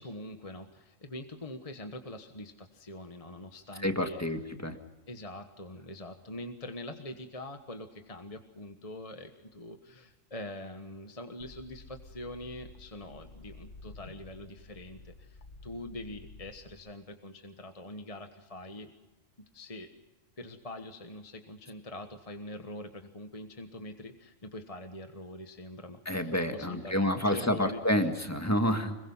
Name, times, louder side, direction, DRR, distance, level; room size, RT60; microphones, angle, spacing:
voice 1, 0.0-4.3 5.1-18.9 19.5-19.9 20.4-27.8, left 1 dB, 30° left, 6 dB, 1.4 m, -44 dB
voice 2, 3.8-4.8 26.1-29.0, left 1 dB, 15° left, 6 dB, 1.8 m, -29 dB
sound 1, 11.4-16.7, left 3 dB, 65° left, 2.1 m, -51 dB
25.5 x 22.5 x 5.6 m, 1.1 s
omnidirectional pair, 1.3 m